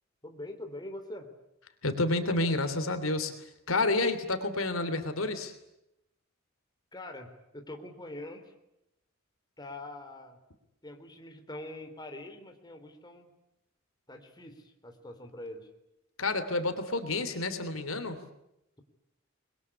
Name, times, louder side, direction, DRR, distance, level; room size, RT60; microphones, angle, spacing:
voice 1, 0.2-1.3 6.9-8.5 9.6-10.4 10.8-13.3 14.1-15.7, left 1 dB, 20° left, 5 dB, 3.5 m, -44 dB
voice 2, 1.8-5.5 16.2-18.2, left 2 dB, 75° left, 9 dB, 3.2 m, -29 dB
27.0 x 22.0 x 9.9 m, 0.84 s
head